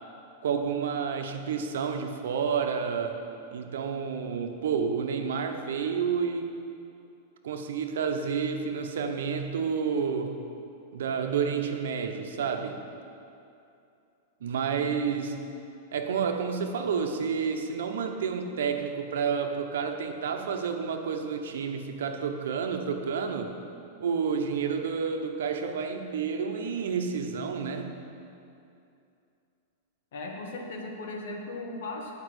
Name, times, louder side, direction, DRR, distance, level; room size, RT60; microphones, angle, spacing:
voice 1, 0.4-3.2 3.5-6.5 7.4-10.4 10.9-12.8 14.4-15.4 15.9-23.5 24.0-27.9, right 6 dB, 80° right, 5 dB, 1.0 m, -30 dB
voice 2, 30.1-32.1, left 2 dB, 60° left, 0 dB, 1.7 m, -37 dB
9.7 x 5.4 x 8.1 m, 2.6 s
supercardioid pair, 170°, 0 cm